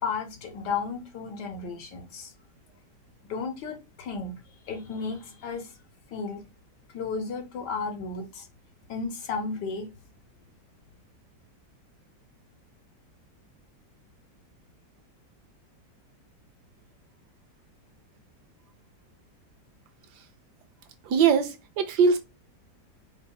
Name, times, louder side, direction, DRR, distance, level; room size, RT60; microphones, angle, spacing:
voice 1, 0.0-2.3 3.3-5.7 6.1-6.4 6.9-8.5 8.9-9.9, left 4 dB, 70° left, 1.4 m, -33 dB
voice 2, 21.1-22.2, right 6 dB, 75° right, 1.1 m, -21 dB
5.2 x 2.5 x 2.3 m
omnidirectional pair, 1.9 m